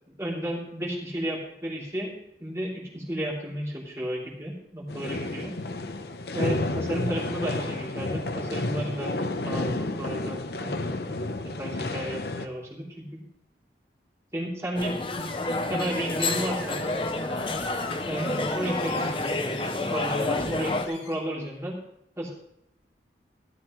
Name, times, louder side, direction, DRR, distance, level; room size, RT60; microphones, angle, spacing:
voice 1, 0.2-5.6 6.3-11.1 11.4-13.2 14.3-15.0 15.4-16.8 18.1-21.8 22.2-22.3, right 1 dB, 15° right, -5 dB, 3.1 m, -33 dB
sound 1, 4.9-12.5, left 2 dB, 65° left, 0.8 m, -31 dB
sound 2, 14.8-20.9, left 2 dB, 30° left, 0.8 m, -29 dB
Screech, 15.1-21.2, left 4 dB, 80° left, 2.0 m, -42 dB
13.5 x 12.5 x 3.2 m, 0.77 s
head